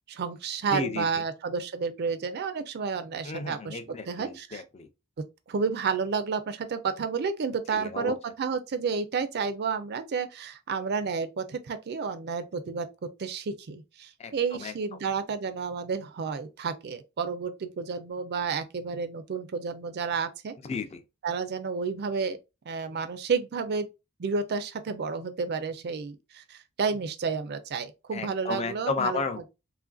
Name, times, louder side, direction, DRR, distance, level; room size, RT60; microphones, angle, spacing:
voice 1, 0.1-3.8 4.1-4.6 5.5-12.9 13.2-20.5 21.2-22.4 22.7-23.9 24.2-29.2, right 5 dB, 50° right, 0.4 m, -31 dB
voice 2, 0.7-1.1 3.2-4.9 7.7-8.2 14.2-14.7 20.6-21.0 28.1-29.5, left 4 dB, 30° left, 0.4 m, -33 dB
3.1 x 2.5 x 2.3 m
head